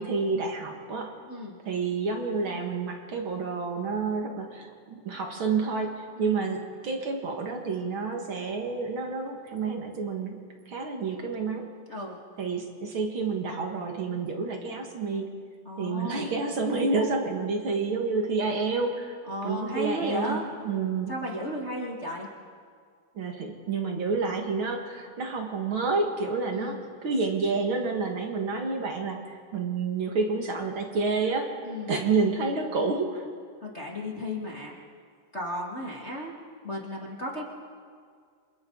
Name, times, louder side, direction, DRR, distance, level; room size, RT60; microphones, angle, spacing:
voice 1, 0.0-1.1 1.6-10.4 10.6-11.7 12.4-15.3 15.8-19.2 19.4-21.1 23.1-26.8 27.0-31.5 31.9-33.3, right 4 dB, 45° right, 2 dB, 1.8 m, -29 dB
voice 2, 11.9-12.2 15.6-16.3 19.3-20.4 21.1-22.3 26.5-26.8 31.6-31.9 33.6-34.7 35.3-36.3 36.6-37.4, left 1 dB, 30° left, -3 dB, 1.3 m, -34 dB
28.5 x 27.5 x 4.0 m, 2.1 s
omnidirectional pair, 4.7 m